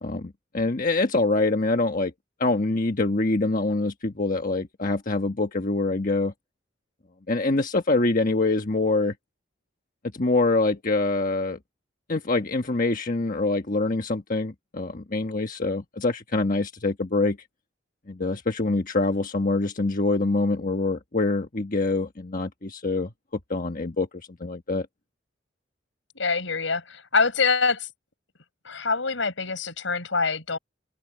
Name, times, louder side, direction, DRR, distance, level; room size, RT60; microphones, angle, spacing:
voice 1, 0.0-2.1 2.4-6.3 7.3-9.1 10.1-11.6 12.1-17.4 18.1-23.1 23.5-24.9, left 2 dB, 45° left, 1.4 m, -25 dB
voice 2, 26.1-27.9 28.6-30.6, left 4 dB, 80° left, 4.8 m, -25 dB
head